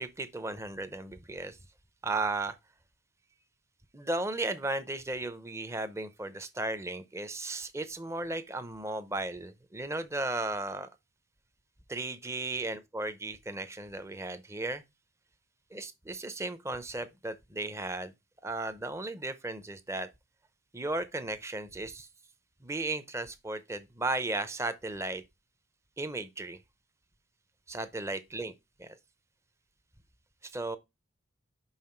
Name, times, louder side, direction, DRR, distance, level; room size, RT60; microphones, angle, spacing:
voice 1, 0.0-1.6 2.0-2.6 3.9-10.9 11.9-14.8 15.7-18.1 18.4-20.1 20.7-22.1 22.6-25.2 26.0-26.6 27.7-28.5 28.8-29.0 30.4-30.8, right 2 dB, 15° right, 0.6 m, -35 dB
5.8 x 5.7 x 4.4 m
head